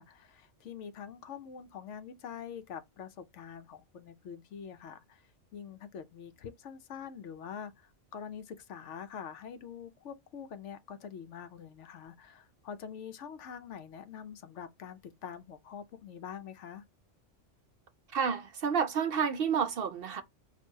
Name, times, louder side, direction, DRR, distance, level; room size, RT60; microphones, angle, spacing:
voice 1, 0.0-5.2 5.5-16.8, left 7 dB, 80° left, 1.0 m, -45 dB
voice 2, 18.1-20.2, right 6 dB, 60° right, 0.7 m, -30 dB
6.2 x 2.6 x 2.8 m
omnidirectional pair, 1.2 m